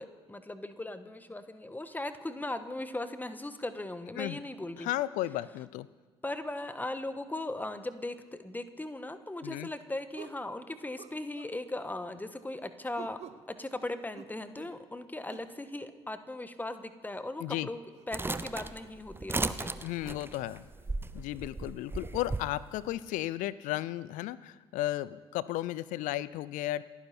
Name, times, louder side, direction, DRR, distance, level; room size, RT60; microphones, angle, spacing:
voice 1, 0.0-4.9 6.2-13.2 13.5-17.8 18.1-19.7, left 2 dB, 10° left, 10 dB, 1.5 m, -38 dB
voice 2, 4.8-5.9 9.4-9.7 17.4-17.7 19.8-20.7 21.1-26.8, left 15 dB, 65° left, 18 dB, 0.6 m, -34 dB
sound 1, 9.1-9.2 10.1-10.5 11.0-11.6 12.9-13.5 14.1-14.8 15.3-15.5 17.1-17.3 17.9-18.1 18.6-18.8 19.5-19.6 20.3-20.4, right 8 dB, 50° right, 0.9 m, -50 dB
sound 2, 18.1-22.5, right 3 dB, 15° right, 0.8 m, -36 dB
28.5 x 10.0 x 4.4 m, 1.4 s
figure-of-eight pair, 50°, 15 cm